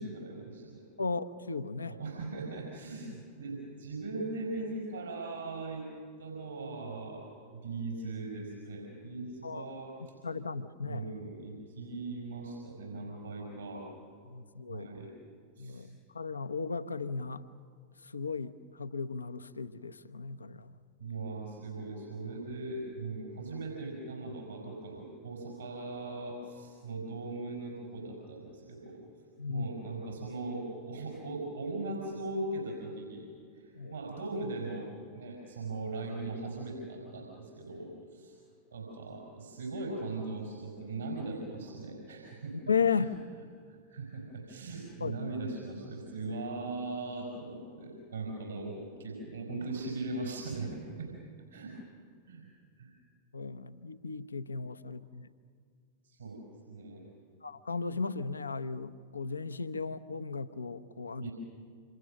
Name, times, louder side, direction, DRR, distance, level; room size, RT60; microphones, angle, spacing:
voice 1, 0.0-0.8 1.8-5.9 6.2-9.9 10.9-13.9 14.7-15.1 15.6-15.9 21.0-29.0 29.5-33.3 33.5-38.3 38.7-42.5 42.9-43.1 43.7-51.1 51.5-51.7 52.2-52.5 52.8-52.9 56.0-57.0 61.2-61.3, right 2 dB, 75° right, 0 dB, 5.2 m, -39 dB
voice 2, 1.0-2.0 9.4-9.7 10.2-11.0 14.3-14.9 15.6-17.4 18.1-20.7 29.4-29.7 33.7-33.9 42.5-43.2 45.0-45.3 53.3-55.3 57.4-61.3, left 5 dB, 75° left, 12 dB, 0.8 m, -35 dB
27.5 x 27.0 x 6.5 m, 2.2 s
figure-of-eight pair, 90°, 0 cm